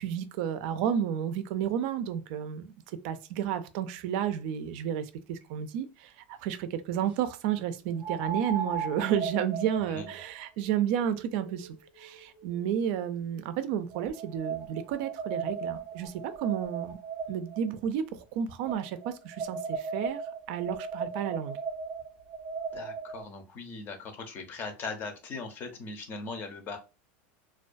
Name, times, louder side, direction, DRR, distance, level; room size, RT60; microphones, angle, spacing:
voice 1, 0.0-2.7 3.0-17.0 17.3-20.2 20.5-21.6, right 9 dB, 60° right, 0.3 m, -31 dB
sound 1, 5.4-5.5 8.0-13.2 13.9-17.6 18.6-23.2, right 5 dB, 20° right, 0.7 m, -37 dB
voice 2, 22.7-26.8, left 4 dB, 35° left, 0.6 m, -39 dB
2.2 x 2.2 x 2.5 m
supercardioid pair, 150°, 6 cm